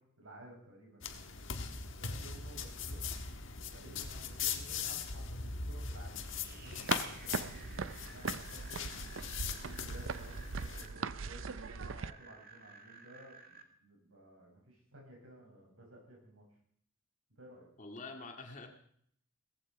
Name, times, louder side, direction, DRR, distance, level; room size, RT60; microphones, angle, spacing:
voice 1, 0.0-1.4 2.0-3.1 3.7-8.9 9.3-16.4 17.3-17.7, right 1 dB, 90° right, 0 dB, 7.5 m, -55 dB
sound 1, 1.0-10.9, left 6 dB, 65° left, 1.6 m, -40 dB
sound 2, 5.9-13.6, right 5 dB, 50° right, 2.0 m, -56 dB
sound 3, 6.7-12.1, right 5 dB, 70° right, 0.6 m, -40 dB
voice 2, 17.8-18.7, left 3 dB, 40° left, 3 dB, 2.2 m, -47 dB
18.0 x 15.0 x 4.8 m, 0.66 s
head